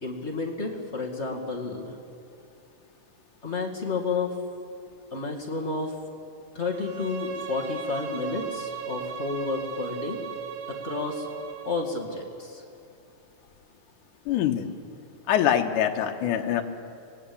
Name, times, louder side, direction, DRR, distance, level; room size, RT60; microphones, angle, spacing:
voice 1, 0.0-2.0 3.4-4.3 5.1-5.9 6.5-10.2 10.7-11.3 11.6-12.6, left 3 dB, 25° left, 0 dB, 1.8 m, -31 dB
Bowed string instrument, 6.7-11.8, right 5 dB, 75° right, 3.2 m, -36 dB
voice 2, 14.3-14.7 15.3-16.6, left 10 dB, 75° left, 4 dB, 2.6 m, -24 dB
25.0 x 19.5 x 8.6 m, 2.7 s
omnidirectional pair, 3.8 m